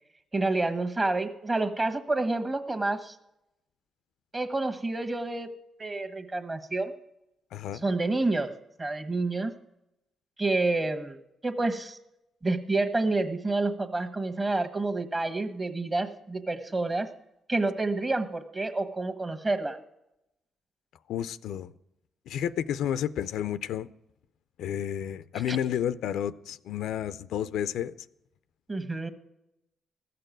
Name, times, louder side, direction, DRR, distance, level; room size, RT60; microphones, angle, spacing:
voice 1, 0.3-3.1 4.3-5.5 5.8-6.9 7.8-8.5 8.8-9.5 10.4-11.2 11.4-12.0 12.4-17.1 17.5-19.8 25.5-25.6 28.7-29.1, right 2 dB, 25° right, 1.4 m, -28 dB
voice 2, 7.5-7.8 21.1-21.7 22.3-23.9 24.6-27.9, left 10 dB, 90° left, 0.5 m, -31 dB
15.0 x 6.8 x 9.0 m
cardioid pair, 95°, 0 cm